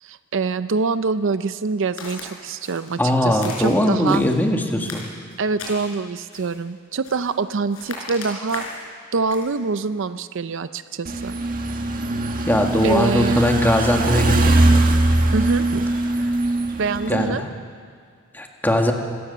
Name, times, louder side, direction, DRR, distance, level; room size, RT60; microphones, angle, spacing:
voice 1, 0.0-4.2 5.4-8.6 9.1-11.4 12.8-13.4 15.3-15.9 16.8-17.4, right 4 dB, 60° right, 12 dB, 0.5 m, -25 dB
Walk footsteps, 2.0-2.3 2.6-3.0 3.4-4.4 4.8-5.9 6.3-6.6 7.0-7.4 7.7-8.8 9.3-9.5, left 3 dB, 80° left, 5.4 m, -37 dB
voice 2, 3.0-5.0 12.5-14.6 17.1-17.5 18.3-18.9, left 1 dB, 10° left, 2 dB, 1.9 m, -20 dB
sound 1, 11.0-17.3, right 2 dB, 40° right, 1.8 m, -20 dB
26.5 x 16.5 x 6.9 m, 2.1 s
head